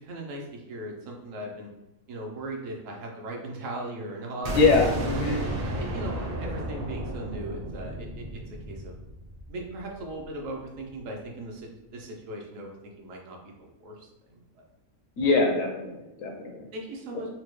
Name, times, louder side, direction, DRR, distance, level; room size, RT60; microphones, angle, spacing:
voice 1, 0.0-1.7 2.1-5.4 5.8-8.9 9.5-14.6 15.2-15.3 16.7-17.3, right 1 dB, 70° right, 1 dB, 1.0 m, -38 dB
sound 1, 4.4-10.2, right 1 dB, 50° right, 0.8 m, -33 dB
voice 2, 4.5-5.4 15.2-16.7, left 3 dB, 75° left, 2 dB, 1.0 m, -23 dB
4.2 x 2.1 x 3.0 m, 0.93 s
omnidirectional pair, 1.4 m